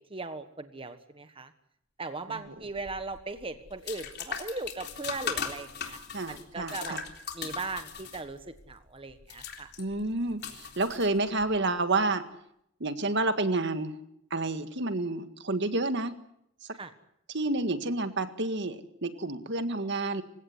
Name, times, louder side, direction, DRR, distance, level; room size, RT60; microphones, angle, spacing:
voice 1, 0.0-1.5 2.0-6.0 6.3-7.0 7.3-9.7 16.7-16.9, right 3 dB, 25° right, 9 dB, 1.4 m, -38 dB
sound 1, 2.7-11.6, left 6 dB, 55° left, 3.6 m, -39 dB
voice 2, 6.1-7.0 9.8-12.3 12.8-13.9 14.3-16.2 17.3-20.2, right 2 dB, 55° right, 10 dB, 1.8 m, -29 dB
28.0 x 17.0 x 9.6 m, 0.75 s
head